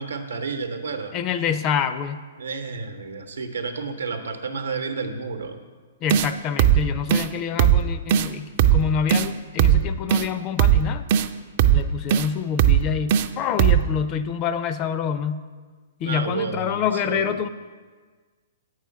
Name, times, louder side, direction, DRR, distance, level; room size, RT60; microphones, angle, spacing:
voice 1, 0.0-1.2 2.4-5.6 16.0-17.4, right 4 dB, 85° right, 6 dB, 0.8 m, -31 dB
voice 2, 1.1-2.2 6.0-11.0 11.7-15.4 16.0-17.5, left 8 dB, 35° left, 10 dB, 0.4 m, -27 dB
sound 1, 6.1-6.3 6.6-6.8 7.1-7.3 7.6-7.8 8.1-8.3 8.6-8.8 9.1-9.3 9.6-9.8 10.1-10.3 10.6-10.8 11.1-11.3 11.6-11.8 12.1-12.3 12.6-12.8 13.1-13.3 13.6-13.8, right 11 dB, 50° right, 0.4 m, -17 dB
7.9 x 4.9 x 5.7 m, 1.5 s
hypercardioid pair, 120°, 0 cm